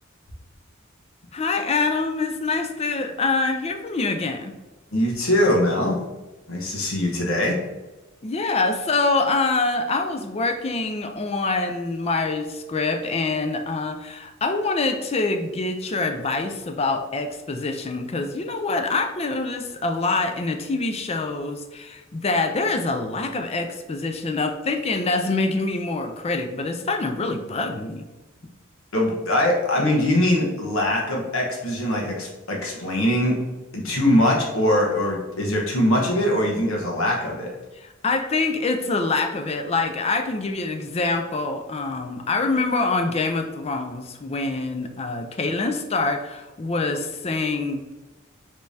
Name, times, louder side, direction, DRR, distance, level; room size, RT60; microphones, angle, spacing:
voice 1, 1.3-4.5 8.2-28.1 37.8-47.9, left 3 dB, 30° left, 6 dB, 0.4 m, -25 dB
voice 2, 4.9-6.0 6.5-7.6 28.9-33.4 33.7-37.5, left 1 dB, 85° left, -2 dB, 1.2 m, -22 dB
5.1 x 3.3 x 2.7 m, 1.1 s
head